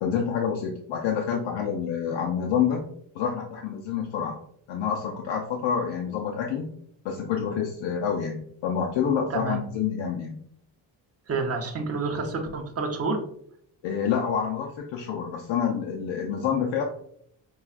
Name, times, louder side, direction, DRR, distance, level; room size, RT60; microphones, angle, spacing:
voice 1, 0.0-2.8 3.1-4.4 4.7-6.6 7.0-10.4 13.8-16.8, left 7 dB, 75° left, 1 dB, 0.7 m, -27 dB
voice 2, 9.3-9.6 11.3-13.2, right 3 dB, 30° right, 2 dB, 0.8 m, -28 dB
5.4 x 2.4 x 2.4 m, 0.68 s
cardioid pair, 100°, 46 cm